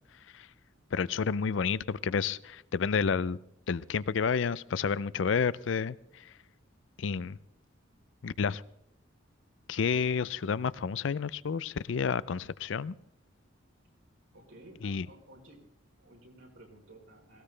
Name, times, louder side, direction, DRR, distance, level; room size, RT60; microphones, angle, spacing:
voice 1, 0.9-3.4 3.7-6.0 7.0-7.4 8.2-8.6 9.7-12.9 14.8-15.1, left 6 dB, 70° left, 20 dB, 0.4 m, -30 dB
voice 2, 14.3-15.6 16.0-17.4, right 1 dB, 85° right, -1 dB, 4.2 m, -54 dB
18.5 x 17.0 x 3.3 m, 0.78 s
head